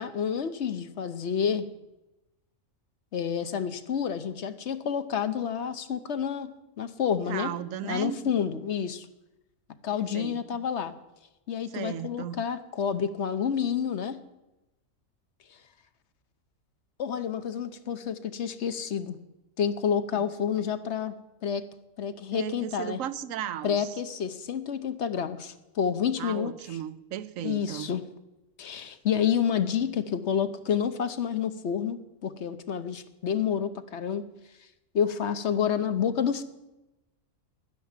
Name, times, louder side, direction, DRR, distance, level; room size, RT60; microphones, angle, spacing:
voice 1, 0.0-1.7 3.1-6.5 6.8-7.5 7.8-9.1 9.8-10.9 11.5-14.2 17.0-19.2 19.6-21.1 21.4-21.6 22.0-23.0 23.6-26.5 27.4-28.0 28.6-34.2 34.9-36.4, left 8 dB, 65° left, 11 dB, 1.1 m, -29 dB
voice 2, 7.3-8.3 9.9-10.6 11.7-12.4 20.1-20.3 22.1-24.0 26.2-27.9, right 10 dB, 90° right, 15 dB, 1.1 m, -36 dB
12.0 x 10.5 x 7.3 m, 0.97 s
omnidirectional pair, 1.3 m